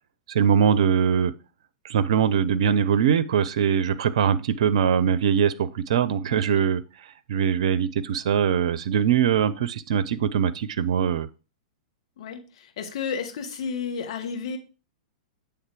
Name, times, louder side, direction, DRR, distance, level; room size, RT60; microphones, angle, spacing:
voice 1, 0.3-1.3 1.8-6.8 7.3-11.3, right 8 dB, 60° right, 14 dB, 0.5 m, -22 dB
voice 2, 6.3-6.6 12.2-14.6, left 6 dB, 55° left, 5 dB, 1.4 m, -32 dB
7.9 x 3.5 x 4.7 m, 0.34 s
figure-of-eight pair, 105°, 4 cm